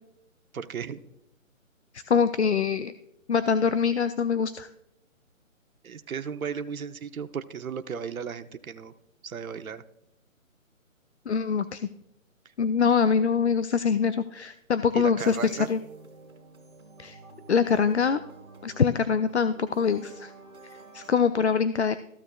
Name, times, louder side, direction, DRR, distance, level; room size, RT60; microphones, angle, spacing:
voice 1, 0.5-1.0 5.8-8.9 9.2-9.8 14.9-15.7, right 7 dB, 85° right, 9 dB, 0.8 m, -35 dB
voice 2, 1.9-2.9 3.3-4.7 11.3-11.8 12.6-15.8 17.0-17.2 17.5-18.2 18.6-20.3 20.7-22.0, left 6 dB, 55° left, 12 dB, 0.5 m, -24 dB
sound 1, 15.2-21.2, right 3 dB, ahead, 0.9 m, -49 dB
14.5 x 6.7 x 2.3 m, 0.82 s
hypercardioid pair, 175°, 41 cm